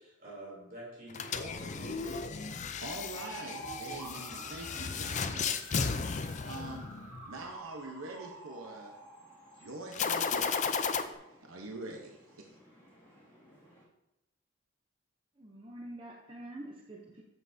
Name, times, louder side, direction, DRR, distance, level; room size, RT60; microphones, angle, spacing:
voice 1, 0.0-2.3, right 1 dB, 45° right, -4 dB, 3.1 m, -48 dB
sound 1, 1.1-7.3 9.9-11.0, left 5 dB, 35° left, 0.4 m, -34 dB
voice 2, 2.5-6.0 6.4-7.0 7.3-8.9 9.6-10.8 11.4-12.5, right 2 dB, 80° right, 1 dB, 0.9 m, -44 dB
sound 2, 3.1-13.8, right 2 dB, 10° left, 2.3 m, -50 dB
voice 3, 15.4-17.2, right 1 dB, 25° right, -1 dB, 0.7 m, -46 dB
9.7 x 7.2 x 2.7 m, 0.94 s
head